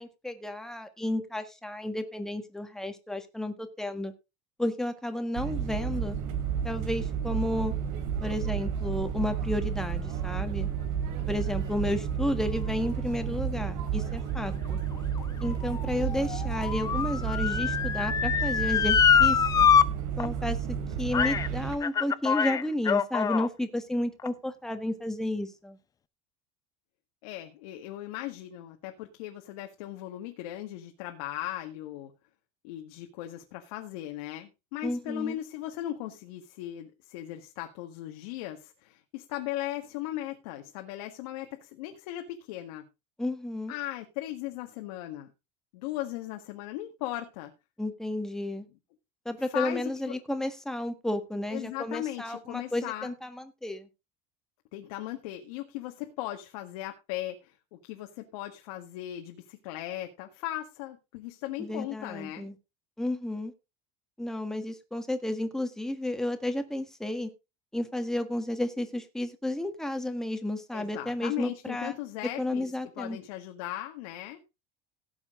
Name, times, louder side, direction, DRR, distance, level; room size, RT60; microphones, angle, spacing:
voice 1, 0.0-4.1 4.6-6.2 6.6-7.7 8.2-10.7 11.3-14.8 15.4-19.7 20.2-25.8 34.8-35.4 43.2-43.7 47.8-48.7 49.3-53.9 61.6-62.5 63.0-63.5 64.2-67.3 67.7-71.9 72.4-73.2, left 1 dB, 5° left, 1.6 m, -32 dB
sound 1, 5.3-21.8, right 8 dB, 80° right, 3.2 m, -32 dB
Motor vehicle (road) / Siren, 14.6-19.8 20.2-20.3 21.1-21.5 21.8-23.5 24.2-24.3, left 7 dB, 20° left, 0.6 m, -25 dB
voice 2, 27.2-32.1 32.6-42.8 43.7-45.3 45.7-47.5 49.4-50.2 51.5-53.1 54.7-62.5 70.7-72.7 73.0-74.4, left 14 dB, 85° left, 1.7 m, -38 dB
17.0 x 7.3 x 3.8 m
cardioid pair, 150°, 18 cm